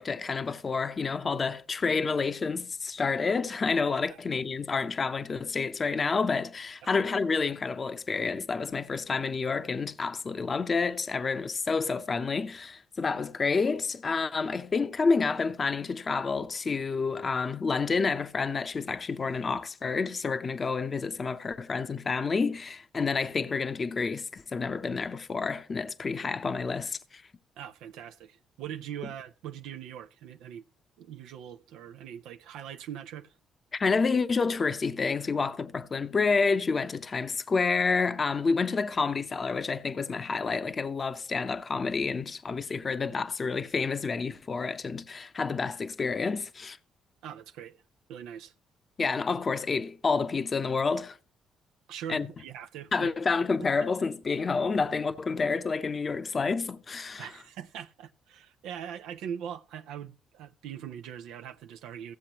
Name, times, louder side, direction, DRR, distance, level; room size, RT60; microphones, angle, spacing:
voice 1, 0.0-27.2 33.7-46.8 49.0-51.2 52.1-52.3 52.9-57.3, left 4 dB, 40° left, 0.7 m, -29 dB
voice 2, 27.6-30.6 31.0-33.3 47.2-47.8 48.1-48.5 51.9-53.1 57.2-62.1, right 9 dB, 75° right, 0.5 m, -41 dB
15.5 x 7.5 x 2.9 m
hypercardioid pair, 50°, 0 cm